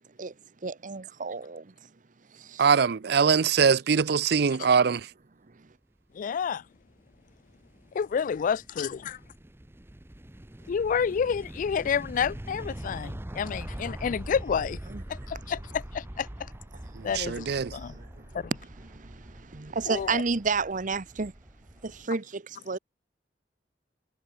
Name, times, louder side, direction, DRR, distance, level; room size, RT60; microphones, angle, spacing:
voice 1, 0.6-1.7 2.3-2.7 14.9-15.0 17.9-18.1 18.9-21.3 21.8-22.8, right 4 dB, 45° right, 0.9 m, -31 dB
voice 2, 2.6-5.1 16.9-17.7, right 6 dB, 65° right, 0.5 m, -23 dB
voice 3, 6.1-6.6 7.9-9.2 10.7-14.8 15.1-16.3 17.0-18.0 18.3-18.5 19.9-20.2, left 7 dB, 50° left, 0.3 m, -29 dB
sound 1, 6.5-22.1, right 1 dB, 15° right, 0.8 m, -43 dB
head